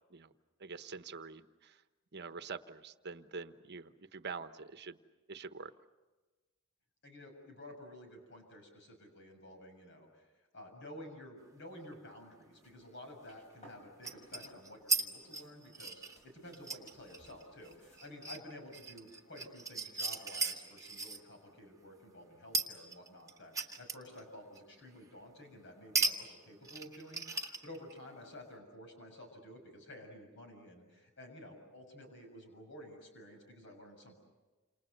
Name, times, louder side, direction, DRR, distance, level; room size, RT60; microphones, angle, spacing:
voice 1, 0.6-1.8 2.1-5.0 5.3-5.7, right 4 dB, 55° right, 10 dB, 1.1 m, -45 dB
voice 2, 7.0-34.2, left 1 dB, 60° left, 4 dB, 6.9 m, -52 dB
sound 1, 11.9-12.0 14.0-15.1 15.3-21.2 22.5-24.2 24.6-24.7 25.9-26.2 26.4-28.0, right 3 dB, 15° right, 1.7 m, -36 dB
sound 2, 12.5-14.6 14.9-18.2, equal, 35° left, 7.8 m, -62 dB
29.0 x 28.0 x 6.7 m, 1.2 s
head